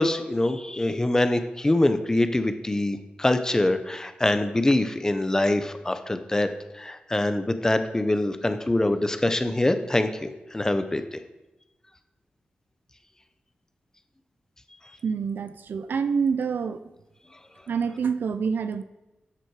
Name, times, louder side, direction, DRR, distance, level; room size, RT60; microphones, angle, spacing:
voice 1, 0.0-6.5 6.7-11.2, left 1 dB, 15° left, 9 dB, 0.9 m, -24 dB
voice 2, 15.0-16.9 17.7-18.8, right 6 dB, 75° right, 12 dB, 0.6 m, -27 dB
13.0 x 7.6 x 4.9 m, 1.0 s
wide cardioid pair, 110°, 3 cm